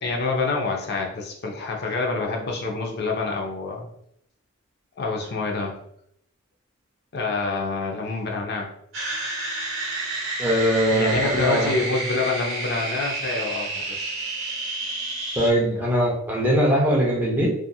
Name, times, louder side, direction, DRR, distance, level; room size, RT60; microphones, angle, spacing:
voice 1, 0.0-3.9 5.0-5.8 7.1-8.7 10.9-14.1, left 3 dB, 50° left, 0 dB, 0.5 m, -27 dB
sound 1, 8.9-15.5, right 2 dB, 65° right, 1.0 m, -30 dB
voice 2, 10.4-11.7 15.4-17.5, equal, 10° right, -4 dB, 0.6 m, -21 dB
2.8 x 2.4 x 2.3 m, 0.72 s
head